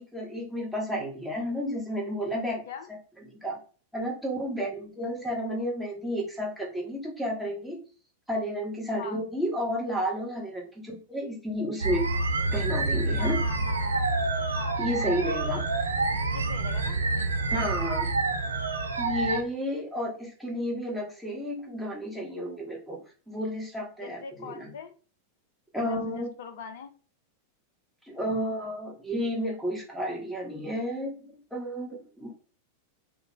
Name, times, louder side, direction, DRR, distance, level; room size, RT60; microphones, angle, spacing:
voice 1, 0.0-2.6 3.4-3.6 3.9-7.8 8.3-12.0 12.5-13.4 14.8-15.6 17.5-18.1 19.0-23.0 23.3-24.7 25.7-26.3 28.0-31.2 31.5-32.3, equal, 5° right, 1.2 m, -32 dB
voice 2, 2.4-2.9 9.0-9.2 13.2-14.1 14.6-14.8 16.3-17.0 24.0-24.9 25.8-26.9, left 6 dB, 55° left, 0.5 m, -41 dB
sound 1, 11.8-19.4, right 3 dB, 75° right, 0.6 m, -27 dB
3.3 x 2.8 x 3.1 m
figure-of-eight pair, 90°, 0 cm